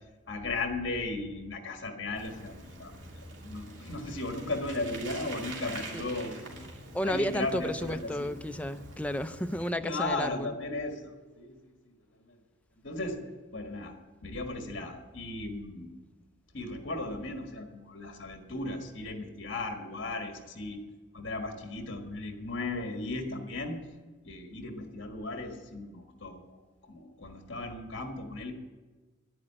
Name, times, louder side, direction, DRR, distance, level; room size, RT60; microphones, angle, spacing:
voice 1, 0.3-2.9 3.4-6.6 6.8-8.3 9.8-11.5 12.3-12.4 12.8-13.2 13.5-15.9 16.5-20.8 21.1-23.8 24.2-26.6 26.9-28.5, left 2 dB, 60° left, 1.7 m, -36 dB
Bicycle, 2.2-9.7, right 2 dB, 70° right, 2.9 m, -45 dB
voice 2, 6.9-10.6, equal, 5° left, 0.4 m, -32 dB
11.0 x 10.5 x 8.9 m
head